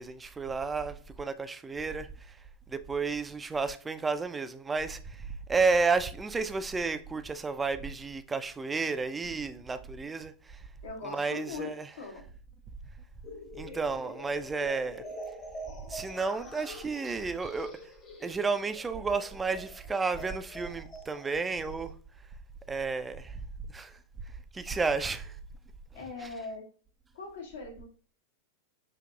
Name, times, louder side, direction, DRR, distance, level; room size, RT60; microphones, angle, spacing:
voice 1, 0.0-2.4 2.7-10.6 11.0-11.9 13.5-15.0 15.9-17.7 18.2-21.9 22.7-23.4 23.7-24.0 24.5-25.4 26.0-26.3, right 4 dB, 15° right, 0.3 m, -32 dB
voice 2, 10.8-12.2 25.9-26.7 27.1-27.9, left 4 dB, 60° left, 1.0 m, -41 dB
sound 1, 13.2-21.9, equal, 30° left, 1.0 m, -46 dB
5.2 x 2.8 x 2.3 m
figure-of-eight pair, 90°, 0 cm